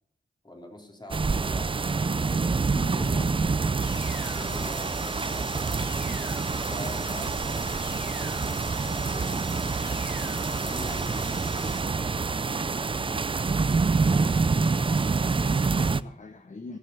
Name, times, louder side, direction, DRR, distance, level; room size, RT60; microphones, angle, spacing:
voice 1, 0.4-2.6 3.1-3.3 3.6-3.7 4.1-5.8 6.7-7.8 8.9-9.7 10.6-12.3 12.6-13.3 14.0-14.3, left 1 dB, 20° left, 2 dB, 3.5 m, -45 dB
sound 1, 1.1-16.0, right 4 dB, 25° right, 0.4 m, -27 dB
voice 2, 2.7-3.5 15.2-16.8, left 3 dB, 40° left, 7 dB, 1.1 m, -42 dB
sound 2, 3.8-11.8, left 3 dB, 80° left, 2.6 m, -42 dB
sound 3, 6.0-12.8, right 4 dB, 50° right, 1.5 m, -50 dB
15.5 x 6.9 x 7.0 m, 0.74 s
cardioid pair, 65°, 19 cm